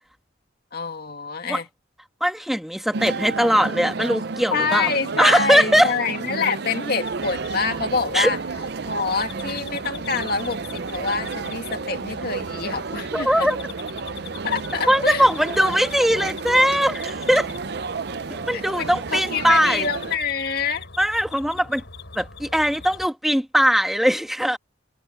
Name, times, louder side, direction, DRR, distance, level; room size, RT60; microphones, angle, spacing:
voice 1, 0.7-1.7 4.5-8.4 8.8-13.5 14.4-15.3 18.5-20.9, left 4 dB, 55° left, 2.3 m, -26 dB
voice 2, 2.2-4.9 5.2-5.9 8.1-8.3 13.1-13.6 14.9-17.5 18.3-19.9 21.0-21.8 22.1-24.6, equal, ahead, 1.3 m, -20 dB
sound 1, 2.9-20.2, right 4 dB, 55° right, 0.6 m, -31 dB
sound 2, 7.0-23.1, left 5 dB, 70° left, 3.9 m, -41 dB
head